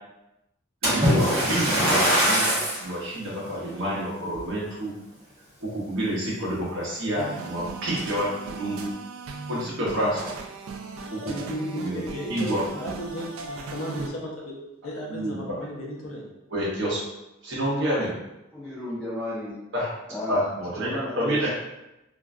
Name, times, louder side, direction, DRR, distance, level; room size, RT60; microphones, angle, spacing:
Splash splatter, 0.8-2.9 3.5-3.7 4.3-4.4, equal, 30° right, 0.9 m, -22 dB
voice 1, 0.8-4.9 5.6-8.9 9.5-10.3 11.1-11.5 11.8-12.0 12.3-12.6 15.1-15.4 16.5-17.0 17.4-18.2 19.7-19.9 20.3-21.5, equal, 60° right, -7 dB, 0.7 m, -28 dB
sound 1, 7.2-14.1, right 4 dB, 85° right, 0.3 m, -38 dB
voice 2, 11.3-14.6 14.8-16.2, equal, 80° left, -2 dB, 0.6 m, -34 dB
voice 3, 18.5-19.6 20.1-20.4 20.7-21.5, left 1 dB, ahead, -13 dB, 0.6 m, -33 dB
2.4 x 2.1 x 2.4 m, 0.94 s
head